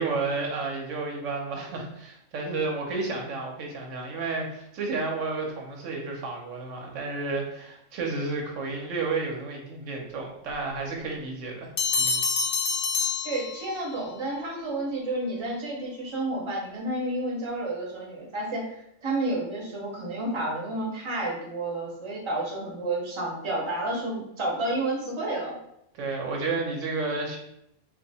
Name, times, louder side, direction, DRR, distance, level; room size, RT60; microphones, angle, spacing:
voice 1, 0.0-12.2 25.9-27.4, right 3 dB, 85° right, 0 dB, 1.1 m, -31 dB
Bell, 11.8-14.0, left 4 dB, 80° left, 0.9 m, -27 dB
voice 2, 13.2-18.6 19.0-25.6, right 2 dB, 25° right, -3 dB, 0.8 m, -30 dB
2.8 x 2.5 x 4.0 m, 0.78 s
omnidirectional pair, 1.2 m